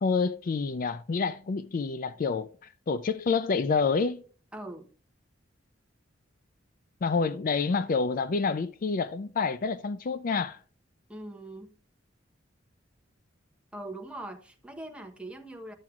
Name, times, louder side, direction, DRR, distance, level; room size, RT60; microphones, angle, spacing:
voice 1, 0.0-2.5 2.9-4.2 7.0-10.6, left 4 dB, 45° left, 0.4 m, -28 dB
voice 2, 4.5-4.9 11.1-11.7 13.7-15.7, right 1 dB, 5° right, 0.9 m, -41 dB
12.0 x 7.2 x 2.4 m
head